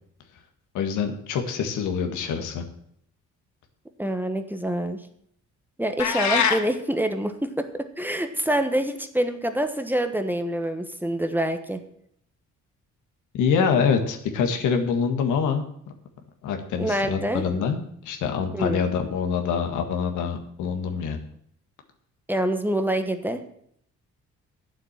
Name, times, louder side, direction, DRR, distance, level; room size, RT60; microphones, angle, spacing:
voice 1, 0.7-2.6 13.3-15.6 16.4-21.2, left 6 dB, 85° left, 4 dB, 1.7 m, -25 dB
voice 2, 4.0-5.0 5.8-11.8 16.8-17.4 18.5-18.8 22.3-23.4, right 1 dB, 5° right, 7 dB, 1.2 m, -26 dB
sound 1, 6.0-6.6, left 6 dB, 70° left, 1.4 m, -22 dB
9.1 x 7.5 x 7.3 m, 0.70 s
cardioid pair, 90°, 30 cm